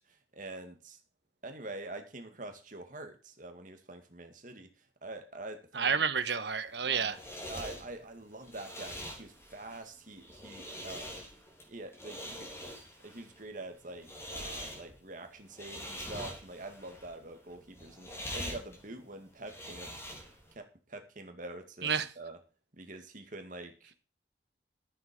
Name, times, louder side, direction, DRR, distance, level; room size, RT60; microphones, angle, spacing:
voice 1, 0.1-1.0 1.4-6.1 6.8-7.2 7.5-11.1 11.7-12.5 13.0-20.0 20.6-22.4 22.8-23.9, right 2 dB, 45° right, 5 dB, 2.2 m, -45 dB
voice 2, 5.8-7.2 21.8-22.1, right 6 dB, 70° right, 11 dB, 1.3 m, -30 dB
sound 1, 6.7-20.5, equal, 15° left, 3.4 m, -44 dB
13.5 x 7.6 x 5.3 m, 0.34 s
head